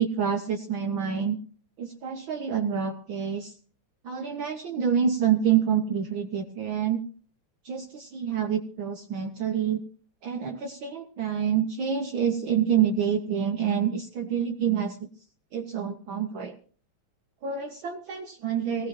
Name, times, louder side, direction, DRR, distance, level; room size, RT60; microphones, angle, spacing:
voice 1, 0.0-1.4 1.8-3.6 4.0-7.0 7.6-9.8 10.2-15.1 15.5-16.6 17.4-18.9, right 8 dB, 80° right, 6 dB, 1.1 m, -27 dB
18.5 x 17.5 x 2.9 m, 0.42 s
omnidirectional pair, 3.3 m